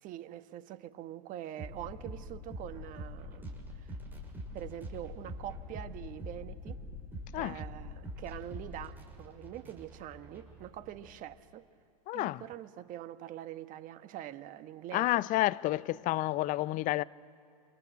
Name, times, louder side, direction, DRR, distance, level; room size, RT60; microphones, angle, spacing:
voice 1, 0.0-3.9 4.5-6.8 7.4-11.6 12.1-15.2, right 12 dB, 40° right, 1.2 m, -44 dB
sound 1, 1.6-11.2, equal, 10° right, 6.1 m, -44 dB
voice 2, 12.1-12.4 14.9-17.0, left 17 dB, 40° left, 0.6 m, -30 dB
28.0 x 26.0 x 8.1 m
hypercardioid pair, 105°, 21 cm